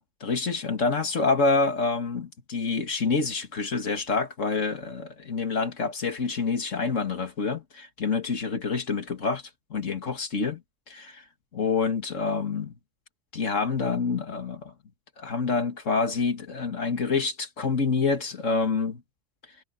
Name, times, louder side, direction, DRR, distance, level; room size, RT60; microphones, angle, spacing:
voice 1, 0.0-9.4 9.7-10.6 10.9-11.2 11.5-12.7 13.3-14.7 15.2-19.0, left 4 dB, 80° left, 2.4 m, -27 dB
omnidirectional pair, 1.3 m